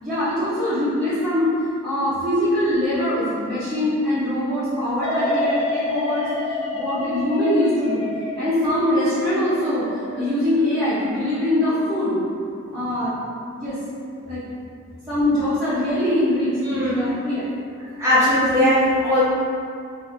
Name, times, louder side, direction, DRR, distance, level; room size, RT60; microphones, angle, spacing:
voice 1, 0.0-1.5 1.8-6.3 6.7-8.0 8.4-9.9 10.1-12.2 12.7-13.2 13.6-13.8 14.2-14.4 15.1-17.5, left 1 dB, ahead, -17 dB, 1.0 m, -22 dB
sound 1, 5.0-12.0 12.4-12.8, left 2 dB, 75° left, 0.8 m, -29 dB
voice 2, 16.6-17.1 18.0-19.2, left 1 dB, 15° right, -11 dB, 1.3 m, -19 dB
4.5 x 2.8 x 3.4 m, 2.3 s
head